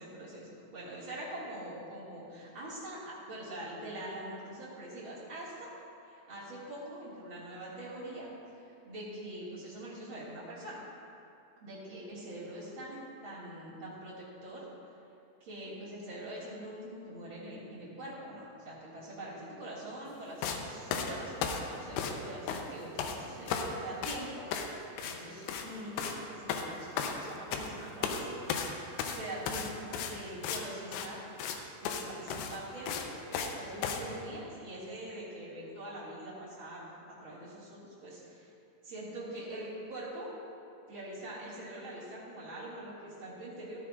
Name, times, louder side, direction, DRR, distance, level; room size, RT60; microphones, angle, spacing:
voice 1, 0.0-5.7 6.0-10.8 11.6-14.7 15.4-28.7 29.2-31.2 31.8-38.5 38.8-40.3 40.9-43.8, right 1 dB, 45° right, -8 dB, 1.7 m, -44 dB
sound 1, 20.4-20.6 20.9-22.2 22.5-23.2 23.5-23.7 24.0-24.2 24.5-24.7 25.0-25.2 25.4-25.7 26.0-26.2 26.5-27.7 28.0-28.2 28.5-30.6 30.9-31.1 31.4-31.6 31.8-32.0 32.3-33.5 33.8-34.0, left 7 dB, 80° left, 2.5 m, -34 dB
13.5 x 13.0 x 2.4 m, 2.6 s
omnidirectional pair, 5.3 m